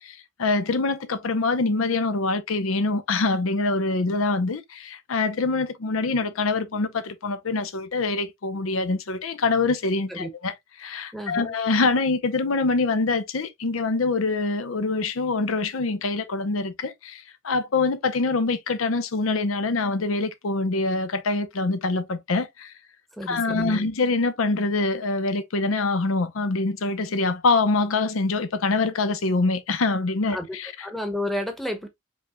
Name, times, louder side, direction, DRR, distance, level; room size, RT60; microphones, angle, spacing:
voice 1, 0.0-22.7 23.3-30.7, left 3 dB, 85° left, 0.7 m, -25 dB
voice 2, 11.1-11.5 23.1-23.9 30.3-30.4 30.8-31.9, left 1 dB, ahead, 0.9 m, -31 dB
5.3 x 3.4 x 2.2 m
head